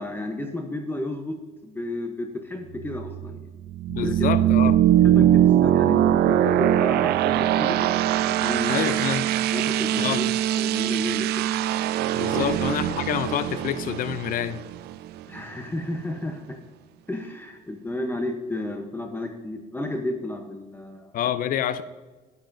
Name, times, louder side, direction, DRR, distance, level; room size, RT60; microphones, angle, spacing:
voice 1, 0.0-1.3 1.6-3.4 3.9-4.1 5.1-8.0 8.4-8.8 9.5-10.2 10.5-11.5 12.3-12.5 15.3-16.6 17.1-21.1, left 1 dB, 10° left, 4 dB, 0.8 m, -32 dB
sound 1, 2.7-15.4, right 12 dB, 75° right, 0.4 m, -22 dB
voice 2, 3.9-4.8 8.7-9.3 10.0-10.3 12.1-14.6 21.1-21.8, left 10 dB, 55° left, 14 dB, 0.5 m, -27 dB
11.5 x 9.7 x 2.6 m, 1.3 s
cardioid pair, 110°, 17 cm